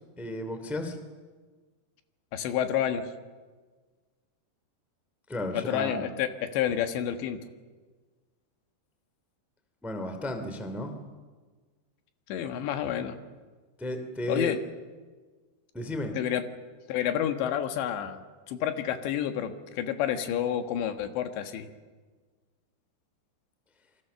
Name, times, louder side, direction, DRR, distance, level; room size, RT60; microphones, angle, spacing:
voice 1, 0.2-1.0 5.3-6.0 9.8-10.9 13.8-14.5 15.7-16.2, left 1 dB, ahead, 6 dB, 1.5 m, -33 dB
voice 2, 2.3-3.0 5.5-7.4 12.3-13.2 14.3-14.6 16.2-16.5 16.9-18.2 18.5-21.7, left 10 dB, 90° left, 7 dB, 3.8 m, -29 dB
28.0 x 24.0 x 7.0 m, 1.4 s
omnidirectional pair, 4.9 m